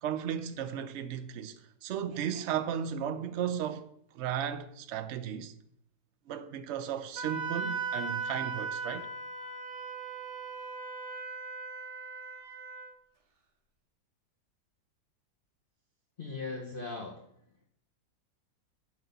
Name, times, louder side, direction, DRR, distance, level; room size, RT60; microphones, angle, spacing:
voice 1, 0.0-3.9 4.1-5.5 6.3-9.1, right 9 dB, 65° right, 0.7 m, -35 dB
Wind instrument woodwind instrument, 7.2-12.9, right 4 dB, 85° right, 1.7 m, -38 dB
voice 2, 16.2-17.3, left 3 dB, 40° left, 0.9 m, -38 dB
8.4 x 4.2 x 5.1 m
omnidirectional pair, 1.7 m